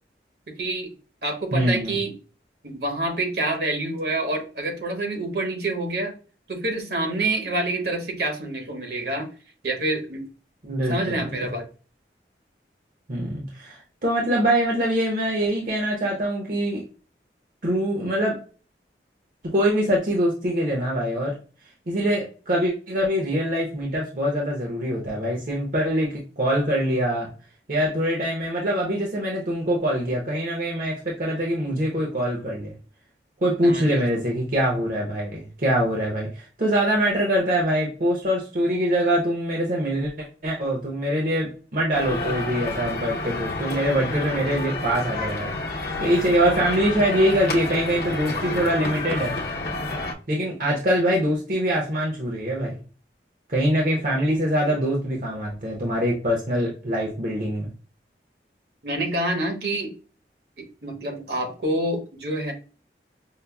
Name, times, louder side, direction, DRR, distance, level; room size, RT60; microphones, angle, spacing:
voice 1, 0.6-0.9 1.2-2.1 2.6-6.1 6.5-9.3 9.6-10.3 10.9-11.6 33.6-34.0 58.8-59.9 60.6-62.5, right 2 dB, 65° right, 2 dB, 1.0 m, -27 dB
voice 2, 1.5-2.0 10.6-11.5 13.1-16.8 17.6-18.4 19.5-21.3 21.9-27.3 27.7-32.7 33.4-45.5 46.0-49.4 50.3-52.8 53.5-57.7, equal, 50° right, -2 dB, 0.7 m, -24 dB
sound 1, 41.9-50.1, left 2 dB, 60° left, 0.8 m, -29 dB
5.4 x 2.0 x 2.2 m, 0.37 s
head